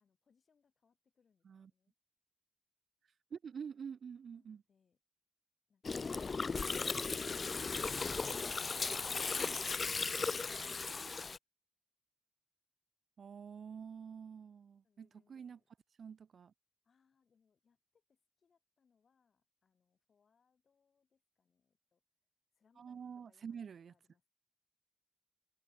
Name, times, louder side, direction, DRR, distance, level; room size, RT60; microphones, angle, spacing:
voice 1, 0.0-1.9 4.3-5.0 14.8-15.7 16.8-22.0 22.6-23.6 23.9-24.3, left 6 dB, 55° left, 7.2 m, -77 dB
voice 2, 3.3-4.6 11.0-11.3 13.2-15.6 16.0-16.5 22.8-23.9, right 7 dB, 70° right, 1.2 m, -48 dB
Gurgling, 5.8-11.4, left 4 dB, 35° left, 0.4 m, -37 dB
wide cardioid pair, 180°, 0 cm